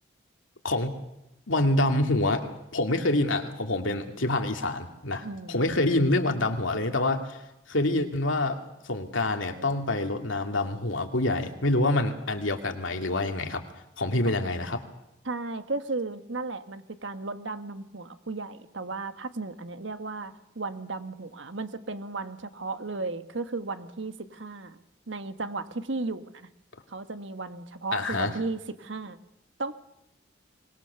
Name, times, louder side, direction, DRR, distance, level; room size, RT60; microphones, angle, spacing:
voice 1, 1.5-7.4 7.7-8.6 8.8-13.6 14.0-14.8 27.9-28.3, left 2 dB, 90° left, 5 dB, 2.6 m, -26 dB
voice 2, 5.2-5.6 15.2-24.8 25.1-26.5 26.9-29.2 29.6-29.7, right 3 dB, 75° right, 9 dB, 1.5 m, -35 dB
24.0 x 21.0 x 7.0 m, 0.86 s
head